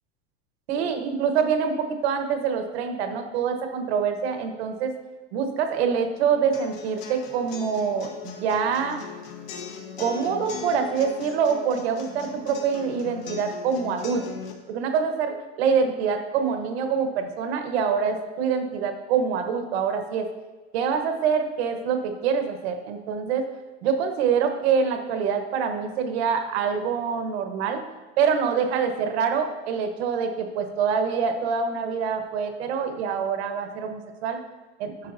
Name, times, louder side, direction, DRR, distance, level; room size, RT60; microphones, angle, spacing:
voice 1, 0.7-4.9 5.3-9.0 10.0-14.2 14.7-20.3 20.7-23.5 23.8-27.8 28.2-34.4 34.8-34.9, right 6 dB, 70° right, 6 dB, 1.1 m, -25 dB
sound 1, 6.5-14.5, left 7 dB, 55° left, 1.2 m, -39 dB
10.5 x 6.3 x 2.6 m, 1.2 s
supercardioid pair, 155°, 33 cm